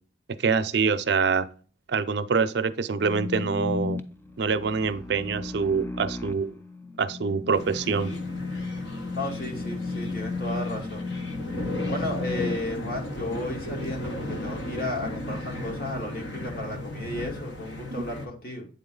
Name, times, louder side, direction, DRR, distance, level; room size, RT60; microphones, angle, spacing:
voice 1, 0.4-1.5 1.9-4.0 4.4-6.5 7.0-8.1, right 5 dB, 60° right, 0.4 m, -25 dB
sound 1, 2.9-12.6, left 3 dB, 10° left, 0.4 m, -34 dB
sound 2, 7.5-18.3, left 1 dB, 70° left, 1.1 m, -36 dB
voice 2, 9.1-11.1 11.9-18.7, left 1 dB, 50° left, 2.0 m, -34 dB
8.5 x 3.9 x 3.7 m
head